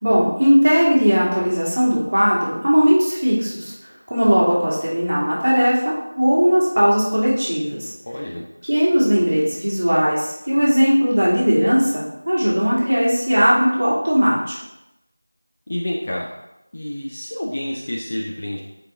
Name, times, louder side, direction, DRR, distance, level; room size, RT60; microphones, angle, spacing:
voice 1, 0.0-3.7 4.1-7.9 8.6-14.6, equal, 30° right, -7 dB, 2.1 m, -18 dB
voice 2, 8.1-8.4 15.7-16.3 16.7-18.6, left 1 dB, 20° left, -3 dB, 0.5 m, -28 dB
7.3 x 4.8 x 3.6 m, 0.90 s
figure-of-eight pair, 180°, 0 cm